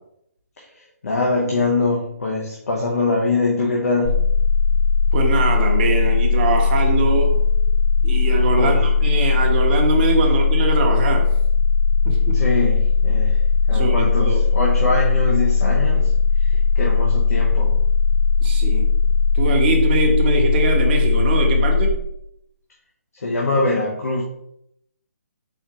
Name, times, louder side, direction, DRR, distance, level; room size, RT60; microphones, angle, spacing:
voice 1, 1.0-4.2 8.6-8.8 12.3-13.4 13.7-16.1 16.4-17.7 23.1-24.2, left 2 dB, 70° left, -2 dB, 0.9 m, -23 dB
sound 1, 4.1-21.9, left 5 dB, 40° left, 0.4 m, -18 dB
voice 2, 5.1-7.3 8.0-11.3 12.0-12.4 13.7-14.4 18.4-18.9 19.3-21.9, right 4 dB, 35° right, 2 dB, 0.9 m, -22 dB
4.2 x 3.6 x 2.9 m, 0.77 s
figure-of-eight pair, 145°, 9 cm